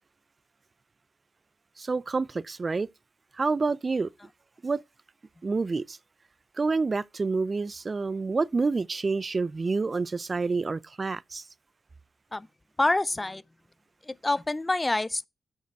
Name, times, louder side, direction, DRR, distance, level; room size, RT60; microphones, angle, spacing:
voice 1, 1.8-2.9 3.3-4.1 4.6-4.8 5.4-6.0 6.6-11.4, right 4 dB, 40° right, 0.4 m, -28 dB
voice 2, 12.8-13.4 14.0-15.3, left 2 dB, 20° left, 0.5 m, -26 dB
8.4 x 6.4 x 4.6 m
supercardioid pair, 55°, 0 cm